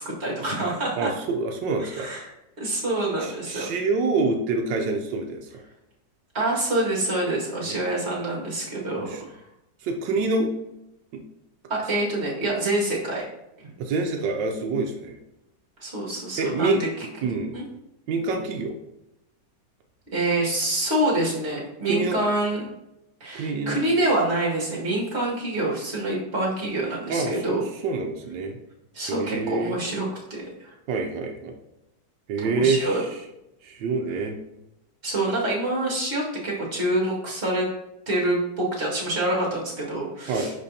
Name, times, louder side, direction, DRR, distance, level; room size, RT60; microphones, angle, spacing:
voice 1, 0.1-1.1 1.8-2.3 2.6-3.7 6.3-9.4 11.7-13.2 13.6-13.7 15.8-16.9 17.5-17.6 20.1-22.7 23.2-27.6 28.9-30.7 32.6-33.0 35.0-37.7 38.1-40.5, right 1 dB, 35° right, -4 dB, 2.1 m, -26 dB
voice 2, 1.0-2.1 3.2-5.6 7.7-7.8 9.0-9.2 9.8-10.5 11.1-11.2 13.8-15.2 16.4-16.8 17.2-17.6 18.1-18.8 21.8-22.2 23.3-23.8 27.1-28.6 29.1-29.7 30.9-31.5 32.3-33.2 33.6-34.4 40.3-40.5, right 3 dB, 85° right, 3 dB, 1.4 m, -26 dB
10.5 x 4.1 x 2.8 m, 0.89 s
omnidirectional pair, 1.9 m